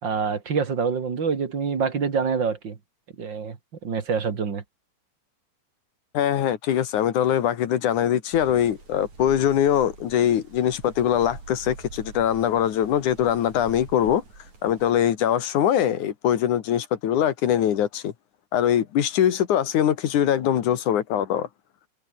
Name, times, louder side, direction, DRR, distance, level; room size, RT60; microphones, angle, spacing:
voice 1, 0.0-2.8 3.2-3.6 3.8-4.6, right 5 dB, 40° right, 2.6 m, -26 dB
voice 2, 6.1-14.2 14.6-18.1 18.5-21.5, left 10 dB, 70° left, 3.1 m, -22 dB
sound 1, 8.3-15.0, right 4 dB, 65° right, 7.4 m, -44 dB
omnidirectional pair, 3.6 m